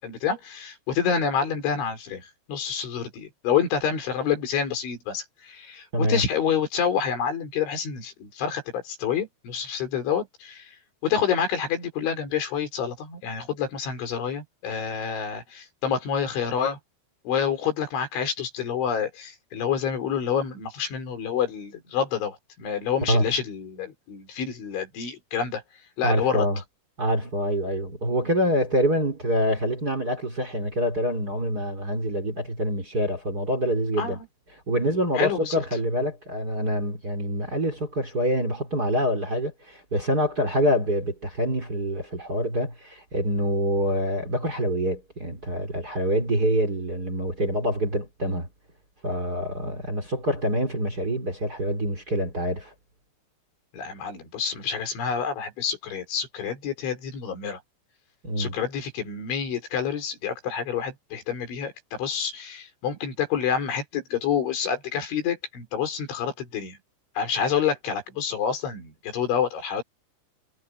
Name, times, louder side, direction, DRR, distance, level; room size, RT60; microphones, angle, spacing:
voice 1, 0.0-10.7 11.0-16.8 17.3-25.6 26.0-26.5 34.0-34.3 35.2-35.6 53.7-57.6 58.4-66.8 67.2-69.8, left 7 dB, 80° left, 7.4 m, -28 dB
voice 2, 26.0-26.6 27.0-34.2 34.7-48.5 49.0-52.7 58.2-58.5, equal, 20° right, 3.6 m, -26 dB
omnidirectional pair, 5.3 m